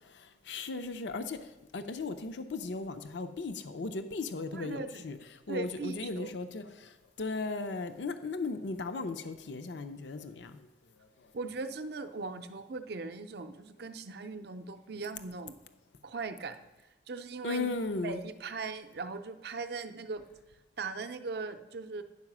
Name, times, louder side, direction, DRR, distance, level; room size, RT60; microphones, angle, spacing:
voice 1, 0.1-1.4 1.7-5.2 5.5-10.7 17.4-18.2, left 3 dB, 70° left, 0.6 m, -36 dB
voice 2, 4.5-5.0 5.5-6.3 11.3-15.6 16.0-16.6 17.1-17.7 18.0-20.2 20.8-22.0, right 4 dB, 55° right, 0.5 m, -39 dB
9.6 x 4.8 x 6.0 m
head